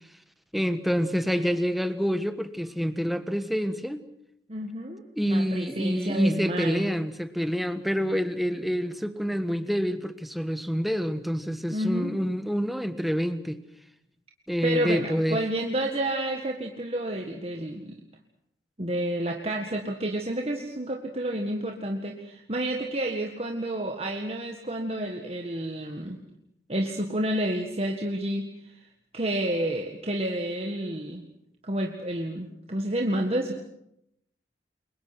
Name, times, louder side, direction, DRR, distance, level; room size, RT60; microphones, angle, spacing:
voice 1, 0.5-4.0 5.1-13.6 14.5-15.4, equal, ahead, 10 dB, 1.4 m, -27 dB
voice 2, 1.3-1.6 4.5-6.9 11.7-12.1 14.6-18.0 18.8-26.2 26.7-28.7 29.1-31.2 31.6-33.6, right 1 dB, 35° right, 2 dB, 1.8 m, -30 dB
28.5 x 23.0 x 6.1 m, 0.76 s
head